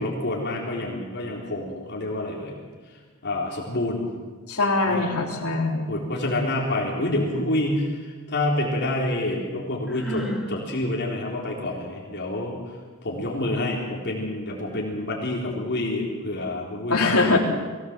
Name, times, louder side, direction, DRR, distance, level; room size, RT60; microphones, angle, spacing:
voice 1, 0.0-2.6 3.2-4.0 4.9-5.0 5.9-12.6 13.0-17.4, left 1 dB, 50° left, -3 dB, 3.9 m, -28 dB
voice 2, 4.5-5.9 16.9-17.4, left 3 dB, 85° left, 0 dB, 3.7 m, -22 dB
Sigh, 9.9-10.5, equal, ahead, 2.9 m, -31 dB
22.5 x 18.0 x 7.5 m, 1.5 s
head